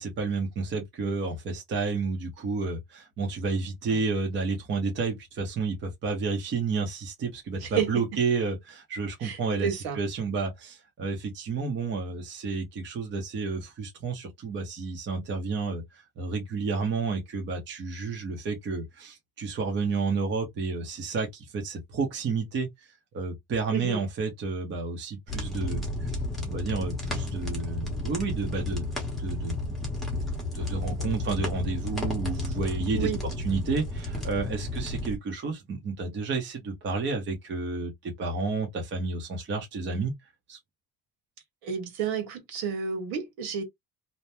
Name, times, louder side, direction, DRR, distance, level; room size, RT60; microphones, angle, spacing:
voice 1, 0.0-22.9 23.1-26.2 26.4-28.8 29.2-29.8 30.5-33.1 33.4-40.1 40.5-40.6, right 4 dB, 30° right, 0.8 m, -31 dB
voice 2, 7.6-7.9 9.2-10.0 23.7-24.0 32.9-33.2 41.6-43.6, right 7 dB, 80° right, 1.5 m, -31 dB
sound 1, 25.3-35.2, left 2 dB, ahead, 1.0 m, -32 dB
2.8 x 2.1 x 3.3 m
cardioid pair, 175°, 37 cm